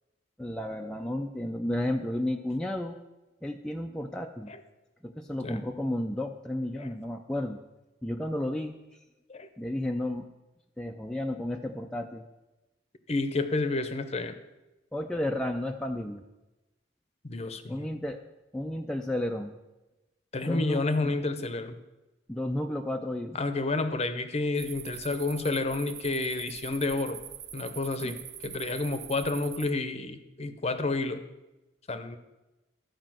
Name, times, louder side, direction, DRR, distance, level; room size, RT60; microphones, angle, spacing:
voice 1, 0.4-3.0 3.4-4.5 5.0-7.6 8.0-8.8 9.6-10.3 10.8-12.3 14.9-16.2 17.7-18.2 18.5-19.6 20.4-21.1 22.3-23.4 28.0-28.2, left 1 dB, 5° left, 2 dB, 0.4 m, -32 dB
voice 2, 13.1-14.4 17.2-17.9 20.3-21.8 23.3-27.2 27.5-28.2 28.4-31.2 31.9-32.2, left 3 dB, 35° left, 10 dB, 0.7 m, -30 dB
sound 1, 24.5-29.7, right 10 dB, 60° right, 0.6 m, -43 dB
13.0 x 5.0 x 7.5 m, 1.1 s
head